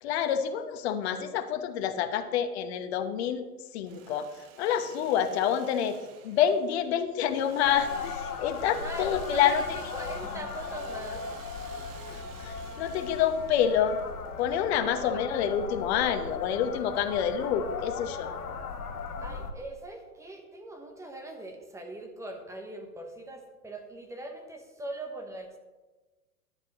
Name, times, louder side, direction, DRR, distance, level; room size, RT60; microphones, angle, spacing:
voice 1, 0.0-3.4 3.7-4.3 4.6-6.0 6.2-9.6 12.1-14.0 14.4-18.4, left 9 dB, 45° left, 8 dB, 1.1 m, -28 dB
Engine / Sawing, 3.7-15.3, right 7 dB, 40° right, 1.2 m, -51 dB
sound 1, 7.6-19.5, left 5 dB, 75° left, 1.4 m, -37 dB
voice 2, 8.7-11.3 14.9-15.2 19.2-25.6, right 1 dB, 5° right, 3 dB, 1.0 m, -40 dB
13.0 x 10.0 x 3.0 m, 1.2 s
hypercardioid pair, 115°, 46 cm